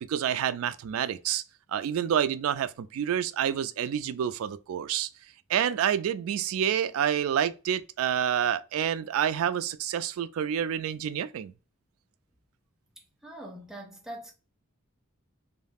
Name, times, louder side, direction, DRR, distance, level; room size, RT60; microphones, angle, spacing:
voice 1, 0.1-1.4 1.7-5.1 5.5-11.5, right 9 dB, 90° right, 0.3 m, -28 dB
voice 2, 13.0-14.3, right 1 dB, ahead, 0.6 m, -43 dB
2.3 x 2.1 x 3.3 m
head